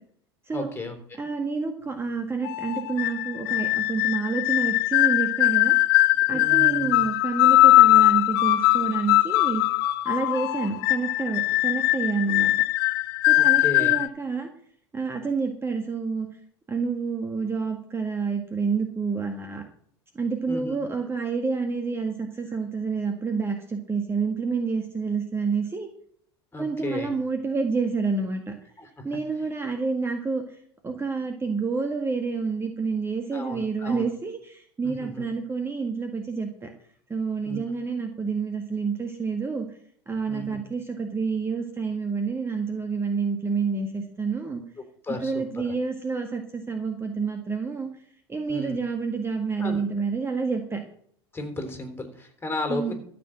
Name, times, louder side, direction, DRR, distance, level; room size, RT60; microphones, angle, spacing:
voice 1, 0.5-1.3 6.3-7.1 13.3-14.0 20.5-21.0 26.5-27.1 28.8-29.0 33.3-34.0 34.8-35.3 37.4-37.6 40.3-40.6 45.0-45.7 48.5-48.8 49.6-49.8 51.3-52.9, left 2 dB, 15° left, 5 dB, 3.8 m, -34 dB
voice 2, 1.2-5.8 6.3-9.6 10.1-12.5 13.3-14.5 14.9-16.3 16.7-19.6 20.1-25.9 26.6-28.5 29.0-30.6 30.8-36.7 37.1-39.7 40.1-44.6 45.2-47.9 48.3-50.8 52.7-52.9, right 4 dB, 20° right, 5 dB, 1.7 m, -28 dB
sound 1, 2.4-14.1, left 18 dB, 60° left, 0.6 m, -21 dB
13.5 x 6.2 x 7.7 m, 0.63 s
figure-of-eight pair, 80°, 14 cm